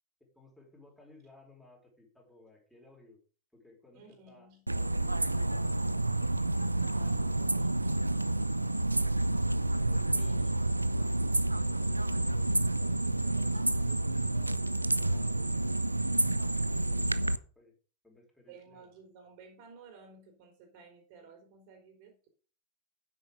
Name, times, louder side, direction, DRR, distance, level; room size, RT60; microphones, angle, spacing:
voice 1, 0.2-3.2 3.5-5.8 9.5-10.2 10.9-16.1 16.7-17.3 17.5-17.8 18.0-18.9, left 2 dB, 5° left, -2 dB, 4.9 m, -59 dB
voice 2, 3.9-4.6 10.1-10.7 18.5-22.3, right 4 dB, 45° right, 4 dB, 3.9 m, -54 dB
sound 1, 4.7-17.4, right 2 dB, 85° right, 0.4 m, -29 dB
9.8 x 8.1 x 5.3 m, 0.39 s
figure-of-eight pair, 90°, 0 cm